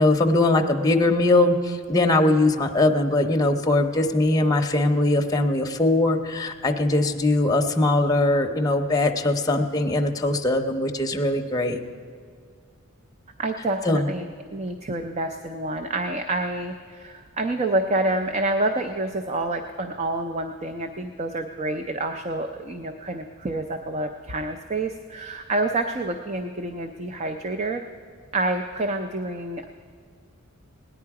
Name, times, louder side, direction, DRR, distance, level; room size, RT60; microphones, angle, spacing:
voice 1, 0.0-11.8 13.8-14.1, left 2 dB, 15° left, 3 dB, 0.7 m, -21 dB
voice 2, 13.4-14.2 14.5-27.8 28.3-29.7, right 2 dB, 30° right, 6 dB, 0.5 m, -28 dB
17.5 x 10.0 x 4.8 m, 2.1 s
head